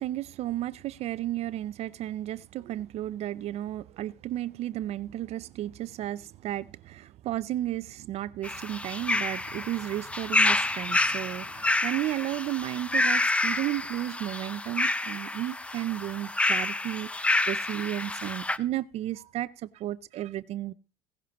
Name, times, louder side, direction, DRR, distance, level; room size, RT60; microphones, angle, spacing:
voice 1, 0.0-20.7, right 14 dB, 45° right, 0.5 m, -33 dB
sound 1, 8.4-18.6, left 2 dB, 10° left, 0.6 m, -28 dB
16.5 x 11.0 x 2.9 m
cardioid pair, 125°, 14 cm